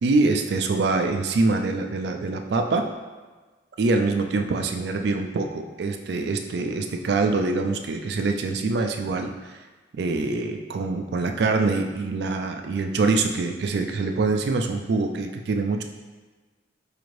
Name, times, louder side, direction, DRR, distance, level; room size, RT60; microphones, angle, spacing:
voice 1, 0.0-2.9 3.8-9.6 10.0-15.8, right 3 dB, 60° right, 5 dB, 0.3 m, -24 dB
4.8 x 2.5 x 3.1 m, 1.3 s
head